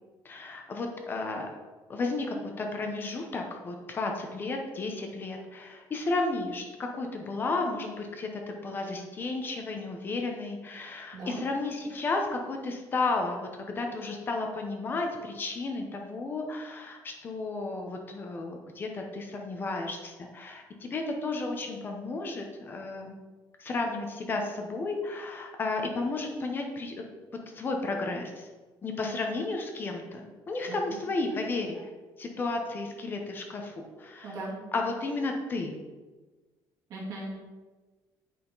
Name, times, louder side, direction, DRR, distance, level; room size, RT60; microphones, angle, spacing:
voice 1, 0.2-1.5 1.9-13.5 13.8-23.1 23.6-27.0 27.5-28.5 28.8-31.9 32.2-34.4 34.7-35.7, left 3 dB, 25° left, 3 dB, 0.7 m, -33 dB
voice 2, 11.1-11.4 30.7-30.8 34.2-34.5 36.9-37.4, right 2 dB, 50° right, -5 dB, 2.5 m, -37 dB
8.4 x 5.7 x 3.9 m, 1.3 s
cardioid pair, 175°, 8 cm